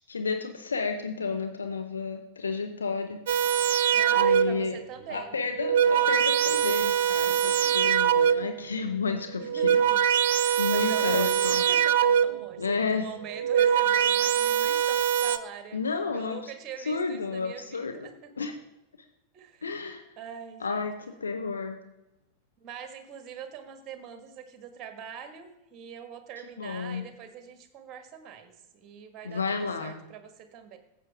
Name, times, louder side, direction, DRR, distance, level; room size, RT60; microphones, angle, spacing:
voice 1, 0.1-3.2 4.1-4.8 5.1-9.8 10.6-11.6 12.6-13.1 15.7-16.5 16.9-18.1 18.4-18.5 19.6-20.0 20.6-21.8 26.6-27.1 29.2-29.9, left 4 dB, 75° left, 5 dB, 0.9 m, -31 dB
sound 1, 3.3-4.7 5.4-8.6 9.4-12.5 13.3-15.4, right 9 dB, 55° right, 0.5 m, -23 dB
voice 2, 3.9-5.3 7.4-7.8 9.4-10.0 10.4-15.8 16.1-18.5 19.3-19.7 20.2-20.9 22.6-30.8, right 8 dB, 30° right, 8 dB, 1.6 m, -43 dB
14.5 x 8.3 x 3.5 m, 0.95 s
figure-of-eight pair, 90°, 0 cm